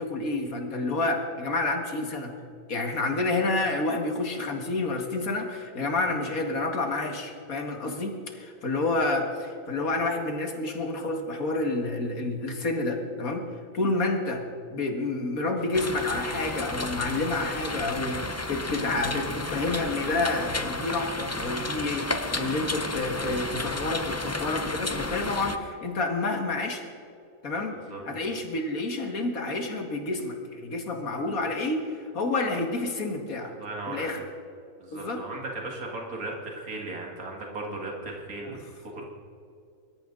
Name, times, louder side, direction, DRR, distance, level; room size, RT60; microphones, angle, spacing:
voice 1, 0.0-2.3 2.7-13.4 13.7-14.4 14.7-26.8 27.4-27.8 28.0-33.5 33.9-34.2 34.9-35.2 38.4-38.6, left 2 dB, 75° left, 3 dB, 2.3 m, -29 dB
sound 1, 15.7-25.6, left 2 dB, 20° left, 0.4 m, -32 dB
voice 2, 33.4-34.2 34.8-39.0, right 2 dB, 80° right, 0 dB, 2.5 m, -37 dB
24.5 x 13.5 x 3.9 m, 2.6 s
omnidirectional pair, 1.5 m